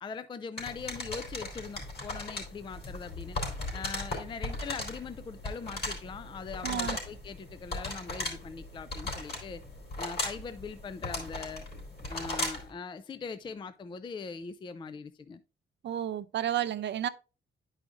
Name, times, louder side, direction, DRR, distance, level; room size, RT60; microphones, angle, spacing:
voice 1, 0.0-3.4 3.7-9.6 10.0-11.7 12.1-15.4, left 5 dB, 25° left, 0.3 m, -41 dB
sound 1, 0.6-12.7, left 2 dB, 50° left, 3.4 m, -37 dB
voice 2, 6.6-7.0 15.8-17.1, right 11 dB, 65° right, 0.5 m, -31 dB
10.5 x 4.9 x 2.5 m
cardioid pair, 110°, 20 cm